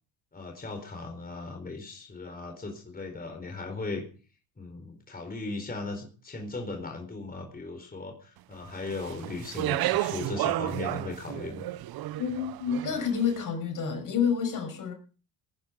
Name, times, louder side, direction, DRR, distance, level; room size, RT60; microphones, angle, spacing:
voice 1, 0.3-4.0 4.6-11.7, left 3 dB, 20° left, 4 dB, 4.4 m, -37 dB
Speech, 8.9-13.2, right 15 dB, 60° right, 1.0 m, -32 dB
voice 2, 12.2-14.9, left 7 dB, 50° left, 5 dB, 6.1 m, -29 dB
18.5 x 10.0 x 5.2 m, 0.38 s
supercardioid pair, 80°, 41 cm